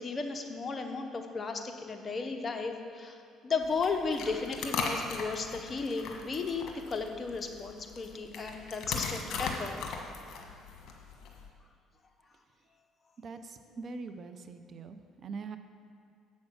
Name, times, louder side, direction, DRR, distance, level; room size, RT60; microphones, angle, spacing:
voice 1, 0.0-9.8, left 4 dB, 35° left, 4 dB, 1.0 m, -35 dB
sound 1, 3.6-11.5, left 4 dB, 60° left, 1.4 m, -39 dB
voice 2, 13.2-15.6, right 4 dB, 50° right, 9 dB, 0.6 m, -43 dB
8.3 x 6.3 x 6.3 m, 2.3 s
supercardioid pair, 85°, 0 cm